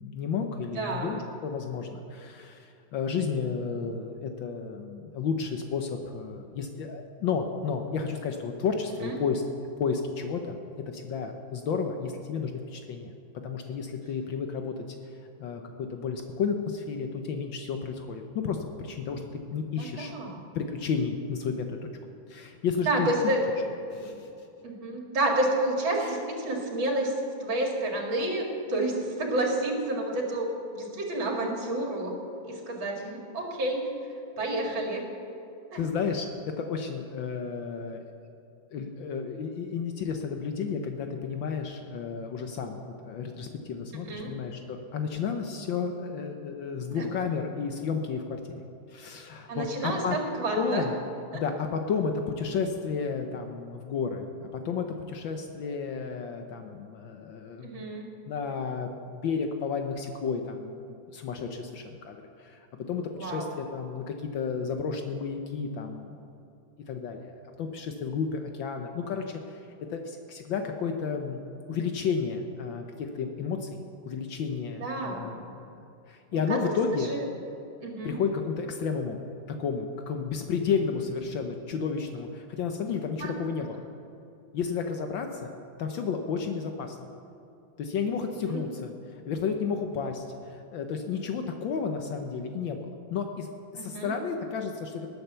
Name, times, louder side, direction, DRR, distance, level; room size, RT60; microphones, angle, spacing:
voice 1, 0.0-9.4 9.8-10.6 10.9-13.1 13.4-15.1 15.4-20.1 20.5-21.9 22.3-23.3 23.9-24.3 26.0-26.2 35.7-38.0 38.7-48.6 48.9-50.2 50.5-50.9 51.3-57.9 58.2-66.2 66.9-73.8 74.0-77.1 78.0-79.2 79.5-83.9 84.5-85.5 85.8-87.1 87.8-95.1, left 5 dB, 70° left, 5 dB, 1.6 m, -32 dB
voice 2, 0.7-1.2 9.0-9.1 19.8-20.4 22.9-23.4 23.9-24.1 24.6-27.1 27.4-30.5 30.7-32.1 32.5-33.9 34.4-35.0 35.7-35.8 43.9-44.3 46.9-47.0 49.5-50.9 51.3-51.4 57.6-58.1 63.2-63.5 74.8-75.3 76.5-76.6 77.0-77.2 77.8-78.2 83.2-83.3 88.4-88.6 93.8-94.1, right 1 dB, 70° right, 0 dB, 3.1 m, -30 dB
19.5 x 9.0 x 6.9 m, 2.7 s
omnidirectional pair, 2.2 m